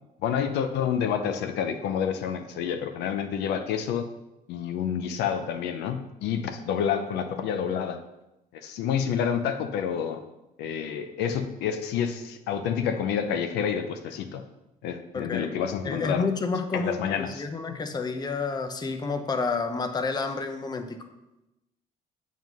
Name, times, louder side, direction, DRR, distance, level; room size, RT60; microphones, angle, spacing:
voice 1, 0.2-4.1 4.5-8.0 8.6-10.2 10.6-14.4 14.8-16.3 16.7-17.4, left 8 dB, 85° left, 7 dB, 0.7 m, -28 dB
voice 2, 15.1-15.5 15.8-21.0, left 4 dB, 25° left, 6 dB, 0.7 m, -30 dB
7.5 x 3.7 x 6.1 m, 0.94 s
cardioid pair, 110°, 17 cm